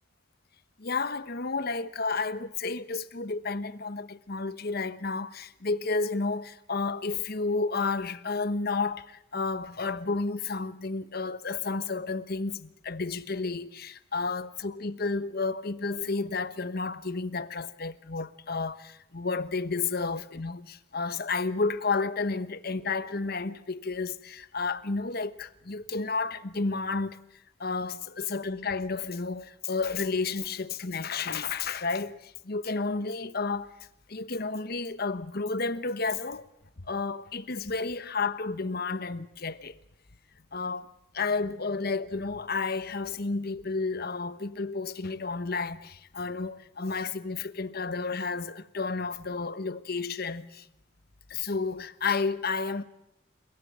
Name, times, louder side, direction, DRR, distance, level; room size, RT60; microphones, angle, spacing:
voice 1, 0.8-27.2 27.6-33.7 34.1-36.4 36.8-39.8 40.5-50.7 51.3-52.8, left 4 dB, 50° left, 1.1 m, -31 dB
29.5 x 17.0 x 8.7 m
head